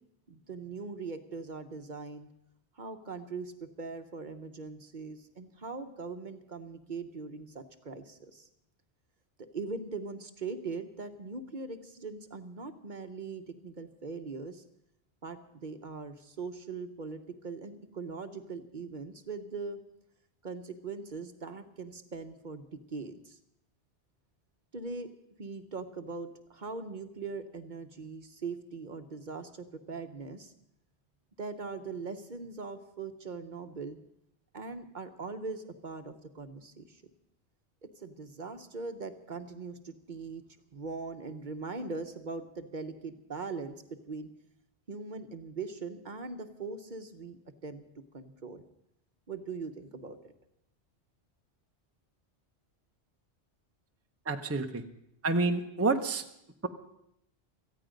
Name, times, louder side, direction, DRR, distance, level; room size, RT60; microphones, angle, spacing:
voice 1, 0.3-2.3 2.8-8.5 9.4-14.6 15.2-19.8 20.4-23.4 24.7-25.1 25.4-30.5 31.4-34.0 34.5-37.0 37.8-40.4 40.7-43.8 44.1-44.3 44.9-47.8 48.1-48.6 49.3-50.2, right 4 dB, 50° right, 8 dB, 1.0 m, -41 dB
voice 2, 54.2-54.8 55.2-56.2, right 3 dB, 15° right, 5 dB, 0.7 m, -28 dB
18.0 x 14.5 x 5.2 m, 0.78 s
omnidirectional pair, 1.1 m